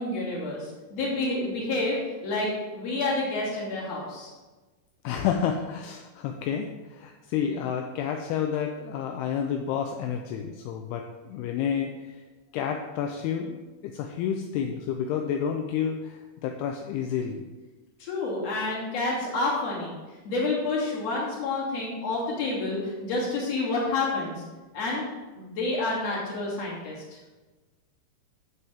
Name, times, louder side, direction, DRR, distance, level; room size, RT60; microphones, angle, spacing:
voice 1, 0.0-4.3 18.0-20.0 20.2-24.4 24.7-25.0 25.3-26.9, left 2 dB, 45° left, -5 dB, 3.3 m, -29 dB
voice 2, 5.0-12.2 12.5-17.4, left 8 dB, 80° left, 3 dB, 2.5 m, -30 dB
12.0 x 7.1 x 3.5 m, 1.2 s
omnidirectional pair, 4.8 m